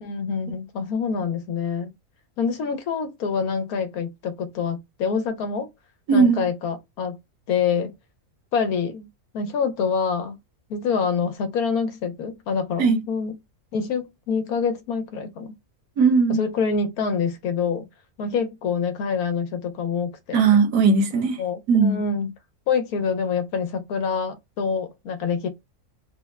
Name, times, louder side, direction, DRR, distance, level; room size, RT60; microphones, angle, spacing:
voice 1, 0.0-1.9 2.4-5.7 6.1-7.2 7.5-7.9 8.5-9.1 9.3-10.4 10.7-13.3 13.7-15.5 16.3-17.9 18.2-20.4 21.4-22.3 22.7-25.5, left 5 dB, 80° left, 1.2 m, -26 dB
voice 2, 6.1-6.5 12.8-13.0 16.0-16.4 20.3-21.4 21.7-22.0, right 5 dB, 80° right, 1.4 m, -18 dB
3.5 x 2.1 x 3.5 m
omnidirectional pair, 1.6 m